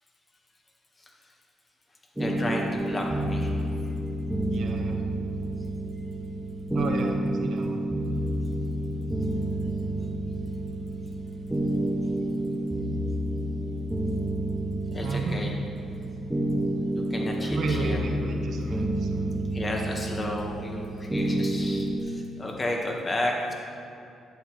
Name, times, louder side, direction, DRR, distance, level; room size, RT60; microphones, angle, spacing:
voice 1, 2.2-3.5 14.9-15.5 16.9-18.1 19.5-23.5, left 1 dB, 25° left, 0 dB, 1.5 m, -32 dB
sound 1, 2.2-22.0, right 1 dB, 5° right, 0.8 m, -29 dB
voice 2, 4.4-5.0 6.7-7.8 15.0-15.4 17.5-19.4, right 3 dB, 65° right, 1 dB, 1.1 m, -33 dB
11.0 x 8.3 x 3.2 m, 2.6 s
cardioid pair, 90°, 0 cm